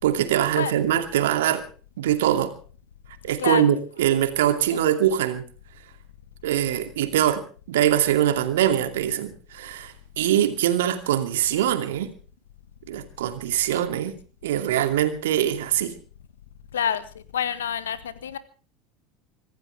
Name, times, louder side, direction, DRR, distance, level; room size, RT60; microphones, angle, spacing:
voice 1, 0.0-1.6 2.0-2.5 3.2-5.4 6.4-7.4 7.7-12.1 12.9-14.1 14.4-15.9, right 11 dB, 70° right, 2.5 m, -23 dB
voice 2, 16.7-17.0 17.3-18.4, left 8 dB, 75° left, 1.7 m, -27 dB
25.0 x 15.0 x 3.5 m
figure-of-eight pair, 75°, 0 cm